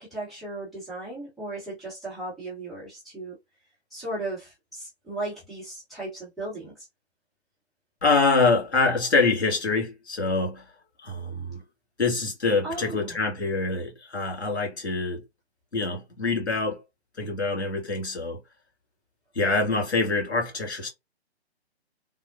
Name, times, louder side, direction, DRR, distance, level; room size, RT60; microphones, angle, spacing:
voice 1, 0.0-3.4 3.9-6.9 12.6-13.2, right 2 dB, ahead, 0.8 m, -36 dB
voice 2, 8.0-10.6 11.0-11.6 12.0-15.2 15.7-16.8 17.2-18.4 19.4-20.9, left 3 dB, 75° left, 2.1 m, -25 dB
3.5 x 2.1 x 2.5 m
figure-of-eight pair, 135°, 33 cm